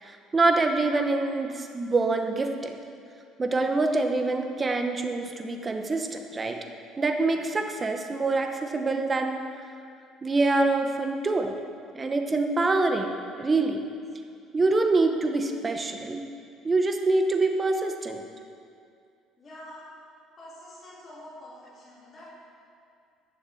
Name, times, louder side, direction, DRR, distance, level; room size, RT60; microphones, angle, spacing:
voice 1, 0.0-2.8 3.4-6.6 7.0-9.4 10.2-11.6 11.9-13.8 14.5-16.2 16.6-18.2, right 3 dB, 20° right, 5 dB, 0.9 m, -25 dB
voice 2, 19.4-19.9 20.4-22.3, left 1 dB, 30° left, -9 dB, 3.1 m, -46 dB
11.0 x 7.1 x 7.0 m, 2.4 s
cardioid pair, 140°, 0 cm